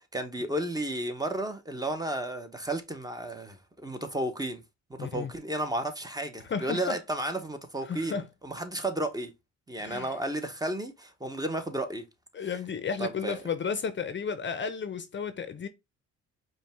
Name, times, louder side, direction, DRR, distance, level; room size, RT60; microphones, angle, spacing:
voice 1, 0.1-4.6 5.0-9.3 9.7-12.0 13.0-13.5, right 1 dB, 15° right, 0.9 m, -33 dB
voice 2, 5.0-5.3 6.5-7.0 7.9-8.3 9.8-10.1 12.3-15.7, left 6 dB, 40° left, 0.7 m, -33 dB
5.2 x 2.3 x 3.4 m
cardioid pair, 90°, 30 cm